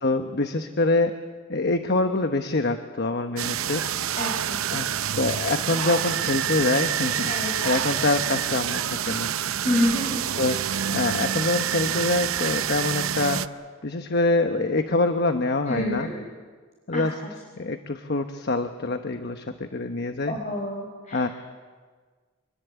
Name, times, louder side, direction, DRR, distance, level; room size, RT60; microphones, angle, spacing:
voice 1, 0.0-1.1 1.5-3.8 4.7-4.9 5.1-9.3 10.4-10.6 10.9-13.4 13.8-16.1 16.9-17.1 17.6-20.3 21.1-21.3, left 2 dB, 50° left, 6 dB, 1.1 m, -25 dB
sound 1, 3.4-13.5, right 9 dB, 80° right, 0.7 m, -27 dB
voice 2, 4.2-4.6 7.3-7.5 9.6-10.2 15.7-16.1 16.9-17.0 20.3-21.5, left 1 dB, 35° left, 0 dB, 4.8 m, -27 dB
26.0 x 21.5 x 8.2 m, 1.5 s
head